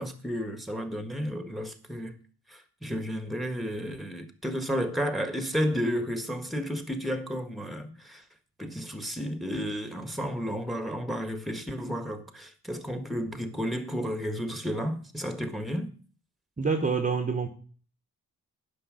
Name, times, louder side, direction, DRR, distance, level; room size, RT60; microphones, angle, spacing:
voice 1, 0.0-2.2 2.5-8.2 8.6-15.9, equal, ahead, 1.5 m, -32 dB
voice 2, 16.6-17.5, right 4 dB, 20° right, 1.1 m, -26 dB
10.0 x 6.4 x 6.3 m
cardioid pair, 95°, 37 cm